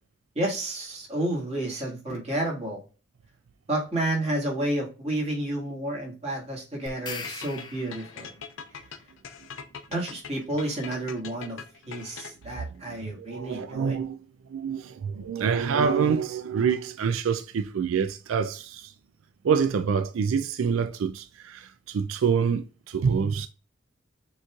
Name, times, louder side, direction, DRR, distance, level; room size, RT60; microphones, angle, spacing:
voice 1, 0.4-2.8 3.7-8.3 9.9-14.0, right 1 dB, 30° right, 1.8 m, -30 dB
sound 1, 6.9-8.4, left 5 dB, 20° left, 0.4 m, -40 dB
sound 2, 7.1-12.6, left 6 dB, 75° left, 0.6 m, -42 dB
voice 2, 13.0-14.2 14.5-18.9 19.4-23.5, right 6 dB, 90° right, 0.4 m, -26 dB
6.8 x 3.0 x 2.3 m
head